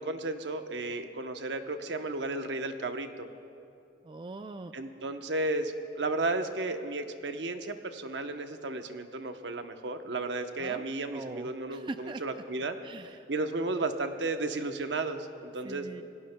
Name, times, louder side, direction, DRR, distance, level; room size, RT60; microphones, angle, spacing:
voice 1, 0.0-3.3 4.7-12.8 13.3-16.0, right 2 dB, 75° right, 7 dB, 0.9 m, -33 dB
voice 2, 4.0-4.7 10.6-12.4 12.8-13.3 15.6-16.0, right 3 dB, 25° right, 9 dB, 0.3 m, -42 dB
27.0 x 18.5 x 2.2 m, 2.7 s
head